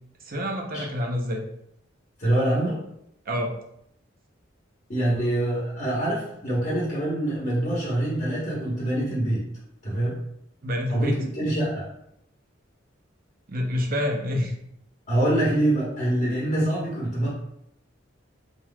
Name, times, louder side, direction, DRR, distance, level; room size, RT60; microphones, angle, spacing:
voice 1, 0.2-1.4 3.3-3.5 10.6-11.2 13.5-14.5, left 1 dB, 50° right, 2 dB, 0.7 m, -27 dB
voice 2, 2.2-2.8 4.9-9.4 9.8-10.2 10.9-11.9 15.1-17.3, right 1 dB, 40° left, -6 dB, 1.1 m, -25 dB
4.4 x 4.0 x 2.3 m, 0.76 s
head